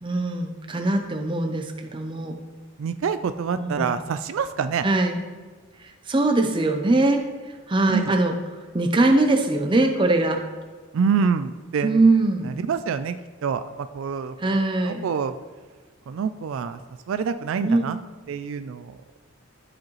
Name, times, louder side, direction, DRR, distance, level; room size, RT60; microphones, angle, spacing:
voice 1, 0.0-2.3 3.5-4.0 4.8-5.2 5.8-7.2 7.7-8.3 8.7-10.4 11.8-12.5 14.4-15.0 17.6-18.0, right 2 dB, 25° right, 4 dB, 0.6 m, -22 dB
voice 2, 2.8-4.9 7.9-8.1 10.9-12.1 12.4-13.2 13.4-15.4 16.1-16.8 17.1-18.0 18.3-19.0, right 6 dB, 70° right, 12 dB, 0.3 m, -26 dB
13.0 x 5.0 x 3.1 m, 1.4 s
head